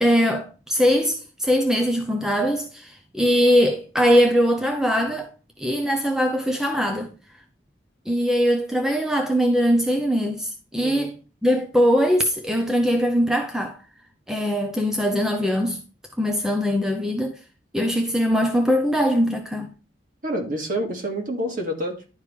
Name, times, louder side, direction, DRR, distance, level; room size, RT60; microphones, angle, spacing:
voice 1, 0.0-5.3 5.6-7.1 8.1-11.2 11.4-13.8 14.3-15.8 16.2-17.4 17.7-19.7, equal, 5° right, 0.6 m, -21 dB
voice 2, 20.2-22.1, equal, 45° right, 2.1 m, -28 dB
11.0 x 4.9 x 3.3 m
head